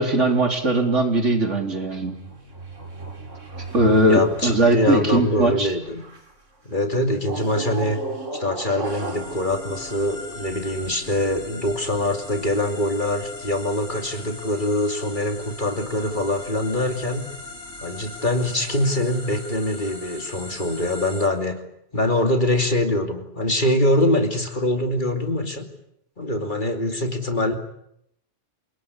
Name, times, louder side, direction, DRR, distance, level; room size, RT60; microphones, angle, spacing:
voice 1, 0.0-2.1 3.7-5.7, right 1 dB, 75° right, 4 dB, 4.2 m, -19 dB
sound 1, 1.8-6.4 7.2-10.8, right 2 dB, 90° right, 3.6 m, -36 dB
voice 2, 4.1-6.0 6.6-8.0 8.4-17.2 17.8-21.6 21.9-25.7 26.2-27.5, left 1 dB, 40° left, 5 dB, 2.9 m, -23 dB
sound 2, 8.8-21.3, left 2 dB, 60° left, 4.1 m, -39 dB
28.5 x 19.5 x 9.9 m, 0.76 s
omnidirectional pair, 1.2 m